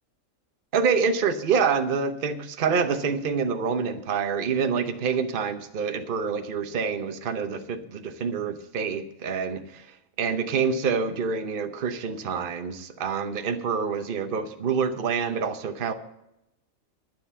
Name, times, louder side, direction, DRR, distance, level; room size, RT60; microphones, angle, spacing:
voice 1, 0.7-9.8 10.2-15.9, right 5 dB, 45° right, 8 dB, 1.0 m, -27 dB
10.5 x 9.8 x 5.6 m, 0.85 s
omnidirectional pair, 1.4 m